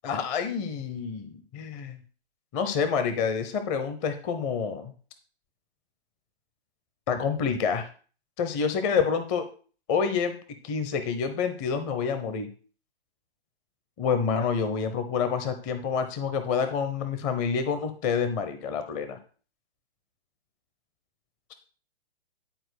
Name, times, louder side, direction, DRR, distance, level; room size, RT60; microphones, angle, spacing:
voice 1, 0.0-2.0 2.5-4.9 7.1-7.9 8.4-9.5 9.9-10.4 10.6-12.5 14.0-19.2, left 6 dB, 20° left, 9 dB, 0.9 m, -28 dB
11.0 x 4.5 x 6.4 m, 0.40 s
hypercardioid pair, 145°, 33 cm